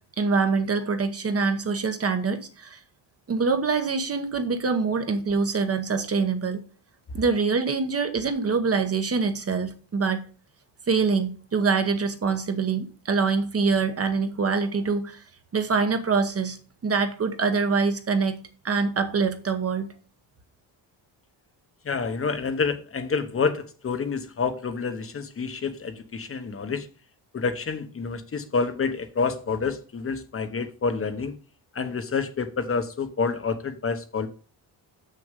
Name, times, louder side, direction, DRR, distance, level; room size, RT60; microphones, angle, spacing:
voice 1, 0.2-2.8 3.3-6.6 7.1-10.2 10.9-15.2 15.5-16.6 16.8-18.4 18.6-19.9, right 4 dB, 35° right, 1.0 m, -24 dB
voice 2, 21.8-26.9 27.3-31.3 31.7-34.3, left 5 dB, 30° left, 1.0 m, -28 dB
6.9 x 6.6 x 5.2 m
cardioid pair, 145°, 43 cm